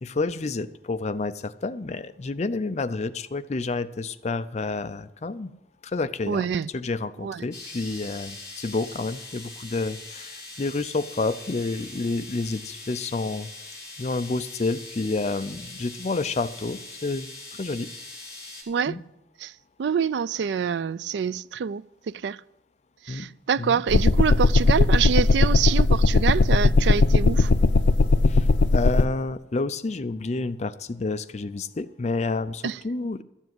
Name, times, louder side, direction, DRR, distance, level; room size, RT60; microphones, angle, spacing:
voice 1, 0.0-5.5 5.8-6.5 6.7-13.5 14.0-17.3 17.6-17.9 18.9-19.0 23.1-23.3 23.6-23.8 28.3-28.5 28.7-33.2, left 3 dB, 40° left, 0.5 m, -29 dB
voice 2, 6.3-6.7 7.2-7.4 18.7-19.0 19.4-19.5 19.8-22.4 23.1-27.5 32.6-32.8, right 7 dB, 75° right, 0.3 m, -26 dB
sound 1, 7.5-18.6, left 2 dB, 20° left, 4.7 m, -42 dB
sound 2, 23.9-29.1, left 3 dB, 90° left, 0.5 m, -18 dB
13.0 x 7.3 x 7.7 m
head